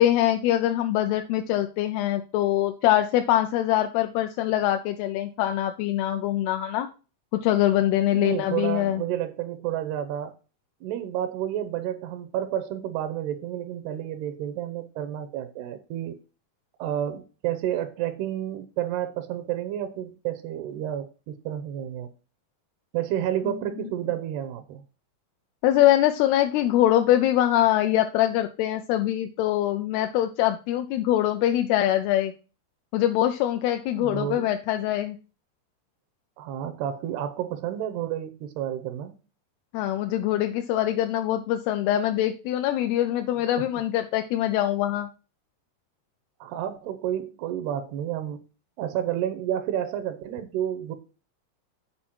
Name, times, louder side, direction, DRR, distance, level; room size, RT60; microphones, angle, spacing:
voice 1, 0.0-6.9 7.4-9.0 25.6-32.3 32.9-35.2 39.7-45.1, left 13 dB, 80° left, 2.5 m, -23 dB
voice 2, 8.1-10.4 10.8-16.2 16.8-22.1 22.9-24.8 34.0-34.5 36.4-39.2 43.3-43.7 46.4-48.4 48.8-51.0, right 11 dB, 85° right, 2.8 m, -30 dB
8.8 x 4.6 x 4.4 m
omnidirectional pair, 4.6 m